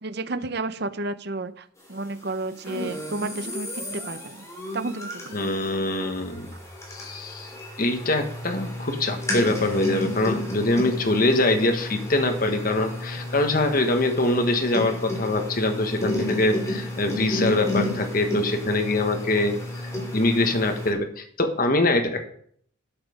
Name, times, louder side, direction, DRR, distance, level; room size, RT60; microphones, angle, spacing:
voice 1, 0.0-4.4 4.7-5.5, right 2 dB, 55° right, 12 dB, 0.8 m, -32 dB
sound 1, 2.6-20.9, left 1 dB, 15° left, 3.2 m, -32 dB
voice 2, 5.3-6.5 6.9-19.6 19.8-22.3, left 2 dB, 45° left, 5 dB, 1.5 m, -24 dB
12.5 x 7.6 x 5.1 m, 0.62 s
head